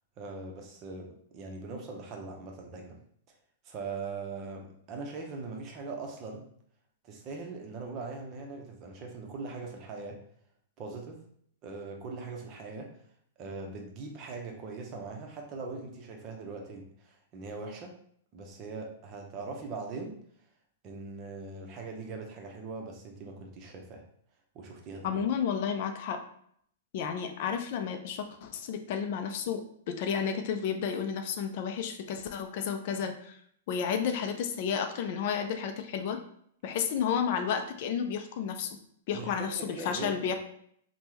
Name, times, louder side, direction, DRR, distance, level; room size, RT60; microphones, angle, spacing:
voice 1, 0.2-3.0 3.6-6.4 7.0-10.2 10.8-11.2 11.6-12.9 13.4-18.0 18.3-20.2 20.8-24.0 24.5-25.2 39.1-40.4, right 3 dB, 35° right, 2 dB, 0.7 m, -41 dB
voice 2, 25.0-26.2 26.9-33.4 33.7-36.2 36.6-38.7 39.1-40.4, left 7 dB, 55° left, 6 dB, 0.4 m, -32 dB
3.3 x 2.1 x 2.9 m, 0.65 s
hypercardioid pair, 110°, 0 cm